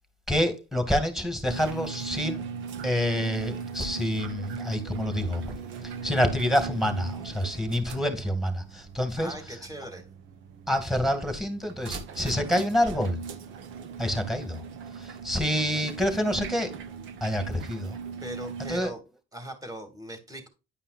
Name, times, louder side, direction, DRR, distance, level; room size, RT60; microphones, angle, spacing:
voice 1, 0.3-2.4 2.8-5.5 5.8-9.3 10.7-13.2 14.0-14.6 15.0-16.7 17.2-18.0 18.7-18.9, equal, ahead, 2.3 m, -27 dB
sound 1, 1.5-18.8, right 6 dB, 80° right, 1.1 m, -39 dB
voice 2, 9.2-10.0 18.2-19.0 19.3-20.5, equal, 15° right, 2.7 m, -39 dB
10.5 x 5.5 x 2.5 m
cardioid pair, 85°, 20 cm